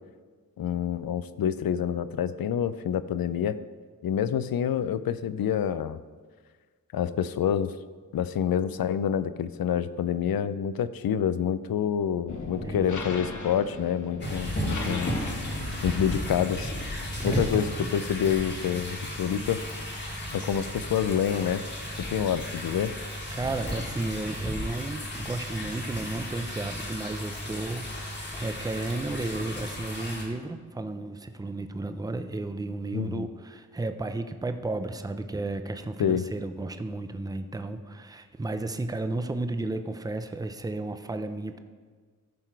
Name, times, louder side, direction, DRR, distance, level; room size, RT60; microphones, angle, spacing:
voice 1, 0.6-3.6 4.0-6.0 6.9-7.7 8.1-15.2 15.8-16.7 17.2-19.6 20.3-21.6 22.1-22.9 32.9-33.3 36.0-36.2, left 8 dB, 80° left, 14 dB, 0.5 m, -27 dB
sound 1, 12.3-18.9, left 3 dB, 55° left, 1.0 m, -39 dB
sound 2, 14.2-30.3, equal, 30° left, 1.8 m, -34 dB
voice 2, 14.5-15.1 17.2-17.5 23.3-41.6, right 2 dB, 10° right, 9 dB, 0.4 m, -33 dB
14.5 x 5.9 x 4.6 m, 1.5 s
wide cardioid pair, 155°, 35 cm